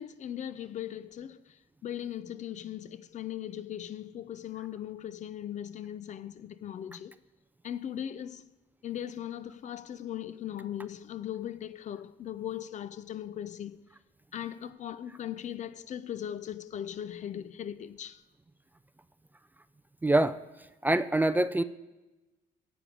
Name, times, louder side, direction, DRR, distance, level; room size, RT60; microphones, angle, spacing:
voice 1, 0.0-1.4 1.8-7.1 7.6-8.5 8.8-13.8 14.3-18.2, left 10 dB, 45° left, 0.5 m, -39 dB
voice 2, 20.0-20.4 20.8-21.6, right 2 dB, 10° right, 0.4 m, -24 dB
17.0 x 6.9 x 5.0 m
cardioid pair, 110°, 17 cm